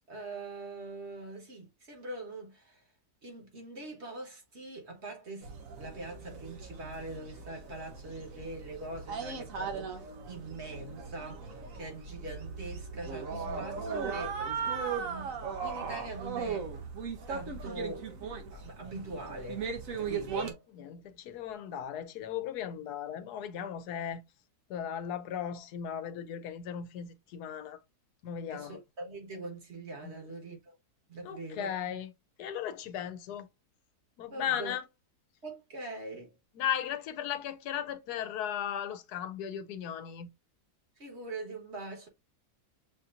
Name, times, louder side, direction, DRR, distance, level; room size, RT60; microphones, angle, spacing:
voice 1, 0.1-2.8 3.2-5.5 5.8-14.4 14.8-16.7 17.3-18.1 18.5-19.6 20.0-20.6 28.5-30.7 31.1-31.8 34.3-34.7 35.4-36.4 41.0-42.1, right 2 dB, 45° right, 1.6 m, -43 dB
sound 1, 5.4-20.5, right 5 dB, 60° right, 1.3 m, -38 dB
voice 2, 13.3-13.6 20.8-24.2 24.7-27.8 28.2-28.8 30.0-30.2 31.2-32.1 32.4-33.5 34.2-34.8 36.6-40.3, left 9 dB, 85° left, 1.2 m, -36 dB
6.9 x 2.8 x 2.4 m
omnidirectional pair, 1.6 m